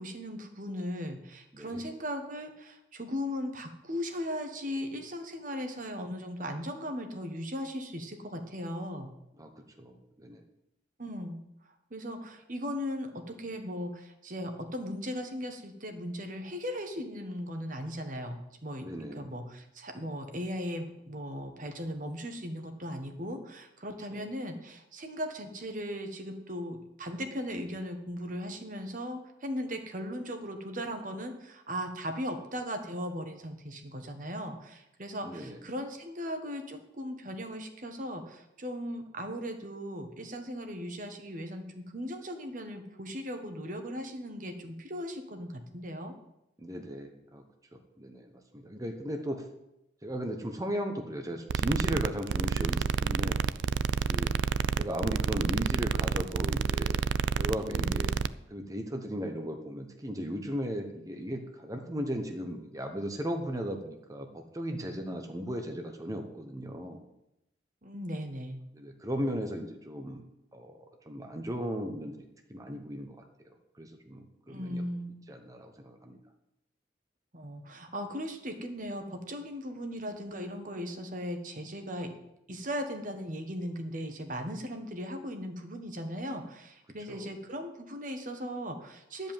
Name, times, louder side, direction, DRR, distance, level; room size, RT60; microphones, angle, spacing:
voice 1, 0.0-9.1 11.0-11.4 11.6-18.8 19.1-46.1 57.6-58.1 67.8-68.6 74.5-75.2 77.3-82.1 82.5-89.3, equal, 45° right, 6 dB, 1.4 m, -38 dB
voice 2, 9.4-10.4 18.8-19.3 24.1-24.3 35.2-35.6 46.6-47.4 47.7-49.5 50.0-53.4 54.1-54.3 54.8-57.0 57.4-58.1 58.5-67.0 68.7-70.2 70.5-72.1 72.5-73.2 73.4-74.8 75.3-76.2 87.1-87.3, equal, 20° right, 4 dB, 1.0 m, -36 dB
sound 1, 51.5-58.3, right 6 dB, 85° right, 0.4 m, -29 dB
11.5 x 5.4 x 8.9 m, 0.86 s
head